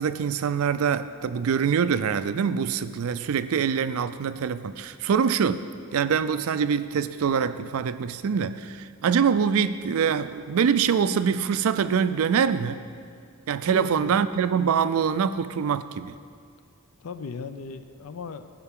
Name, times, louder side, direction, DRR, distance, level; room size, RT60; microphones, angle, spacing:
voice 1, 0.0-5.6 5.9-12.8 13.5-16.1, right 7 dB, 75° right, 13 dB, 0.4 m, -24 dB
voice 2, 13.7-14.2 17.0-18.5, left 4 dB, 75° left, 10 dB, 0.5 m, -36 dB
15.5 x 5.8 x 3.7 m, 2.2 s
head